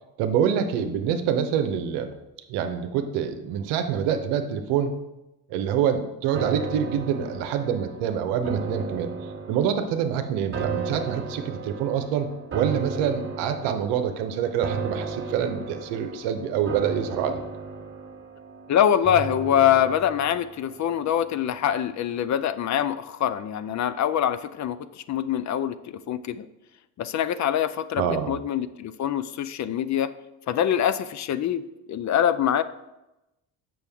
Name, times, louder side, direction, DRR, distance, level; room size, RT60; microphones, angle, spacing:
voice 1, 0.2-2.1 2.5-5.0 5.5-9.1 9.5-17.4 28.0-28.4, right 8 dB, 85° right, 7 dB, 0.8 m, -26 dB
sound 1, 6.3-21.6 22.0-22.1, right 5 dB, 30° right, 1.3 m, -35 dB
voice 2, 18.7-26.5 27.0-30.1 30.5-31.6 31.9-32.6, left 10 dB, 45° left, 14 dB, 0.5 m, -24 dB
6.8 x 6.1 x 3.5 m, 0.96 s
supercardioid pair, 65°, 41 cm